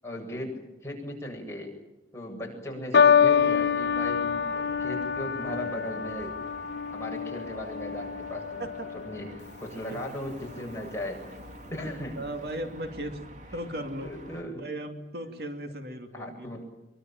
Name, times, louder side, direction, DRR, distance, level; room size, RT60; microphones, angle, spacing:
voice 1, 0.0-1.7 2.1-6.4 6.9-8.7 9.0-9.3 9.6-11.2 11.7-12.2 14.0-14.6 15.1-15.3 16.1-16.7, left 1 dB, 15° left, 0 dB, 7.8 m, -37 dB
sound 1, 2.9-9.5 10.3-10.7, left 7 dB, 75° left, 1.0 m, -26 dB
sound 2, 3.3-14.4, right 1 dB, 45° right, 2.5 m, -48 dB
voice 2, 11.8-13.2 13.5-14.2 14.5-16.5, right 1 dB, 60° right, 5 dB, 2.6 m, -37 dB
24.5 x 23.5 x 9.1 m, 0.99 s
head